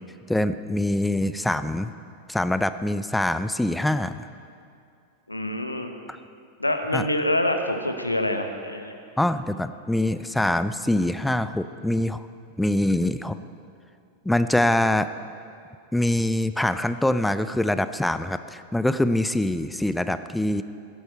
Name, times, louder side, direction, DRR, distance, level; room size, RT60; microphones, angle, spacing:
voice 1, 0.3-1.9 2.3-4.3 6.1-6.2 6.9-7.1 9.2-12.3 12.6-13.4 14.2-15.1 15.9-20.6, left 1 dB, 5° left, 12 dB, 0.5 m, -24 dB
voice 2, 5.3-5.9 6.6-8.9, left 1 dB, 85° left, 6 dB, 1.1 m, -26 dB
17.5 x 12.5 x 4.5 m, 2.4 s
figure-of-eight pair, 90°, 0 cm